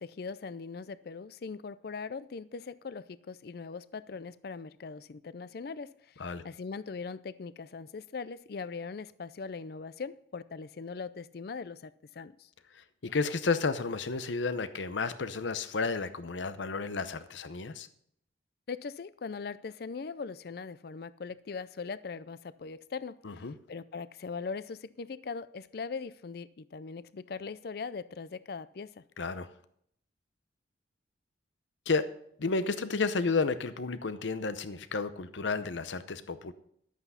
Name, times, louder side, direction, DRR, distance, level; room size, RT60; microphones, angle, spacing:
voice 1, 0.0-12.5 18.7-29.0, left 5 dB, 55° left, 17 dB, 0.4 m, -40 dB
voice 2, 13.0-17.9 23.2-23.5 29.2-29.5 31.9-32.1 32.4-36.5, left 4 dB, 90° left, 13 dB, 0.7 m, -32 dB
12.0 x 8.3 x 5.6 m, 0.68 s
head